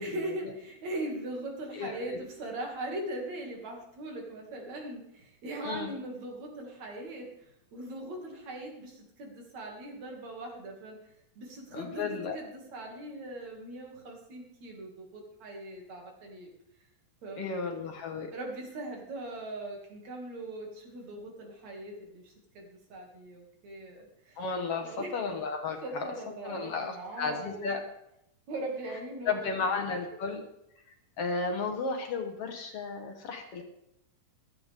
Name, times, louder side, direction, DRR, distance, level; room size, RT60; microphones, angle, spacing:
voice 1, 0.0-16.5 17.2-17.5 18.3-24.4 24.8-25.2 25.8-27.7 28.5-29.5, right 1 dB, 65° right, 0 dB, 3.7 m, -40 dB
voice 2, 1.7-2.2 5.6-5.9 11.7-12.4 17.4-18.3 24.4-26.1 26.4-27.8 29.3-30.4 31.2-33.6, left 4 dB, 60° left, 4 dB, 2.0 m, -33 dB
15.5 x 12.5 x 3.6 m, 0.79 s
omnidirectional pair, 3.4 m